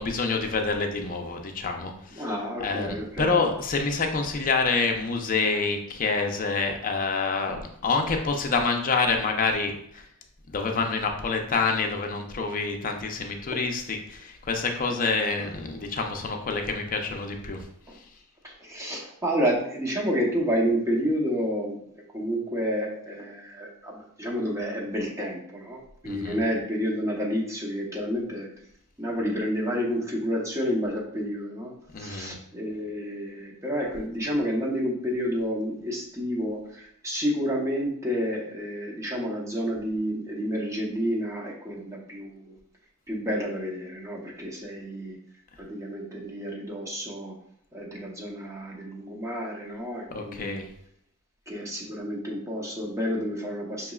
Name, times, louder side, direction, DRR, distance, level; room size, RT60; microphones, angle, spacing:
voice 1, 0.0-2.3 2.6-10.0 10.5-17.6 26.0-26.4 31.9-32.4 50.1-50.7, left 4 dB, 40° left, 3 dB, 0.6 m, -27 dB
voice 2, 2.2-3.5 18.4-21.8 22.1-25.8 26.0-28.5 29.0-31.7 32.0-42.5 43.1-45.2 45.6-47.3 47.7-50.6 51.5-53.9, equal, 15° right, -2 dB, 0.8 m, -30 dB
5.8 x 3.0 x 2.3 m, 0.70 s
head